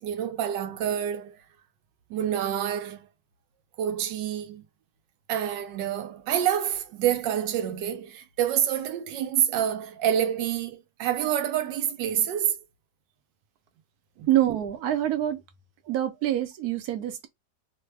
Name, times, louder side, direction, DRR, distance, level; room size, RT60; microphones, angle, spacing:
voice 1, 0.0-1.4 2.1-3.1 3.8-4.7 5.3-12.6 14.2-14.3, right 10 dB, 90° right, 1.3 m, -27 dB
voice 2, 14.3-15.4 15.9-17.3, right 12 dB, 65° right, 1.1 m, -26 dB
3.2 x 2.2 x 3.3 m
omnidirectional pair, 1.9 m